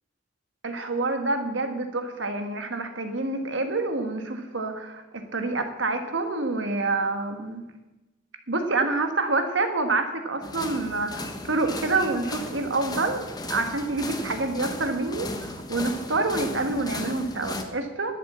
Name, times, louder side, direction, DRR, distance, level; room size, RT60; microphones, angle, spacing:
voice 1, 0.6-5.0 5.3-7.6 8.5-18.1, right 3 dB, 80° right, 6 dB, 1.6 m, -27 dB
sound 1, 10.4-17.6, left 2 dB, 20° left, 1.1 m, -36 dB
12.0 x 7.5 x 7.4 m, 1.1 s
head